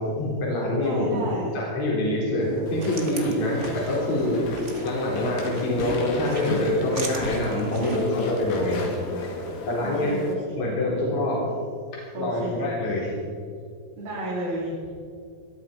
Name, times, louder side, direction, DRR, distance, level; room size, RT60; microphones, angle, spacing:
voice 1, 0.0-1.3 1.5-4.5 4.8-8.9 9.7-10.2 10.6-11.5 11.9-13.1, left 1 dB, 50° left, -4 dB, 5.2 m, -25 dB
voice 2, 0.8-1.5 8.5-9.4 9.8-10.6 12.1-12.7 14.0-14.9, right 1 dB, 75° right, -6 dB, 4.7 m, -33 dB
sound 1, 2.4-8.1, right 3 dB, 60° right, 0.7 m, -39 dB
Walk footsteps / Chatter / Squeak, 2.7-10.3, left 2 dB, 65° left, 3.7 m, -34 dB
19.5 x 13.0 x 5.2 m, 2.3 s
omnidirectional pair, 4.3 m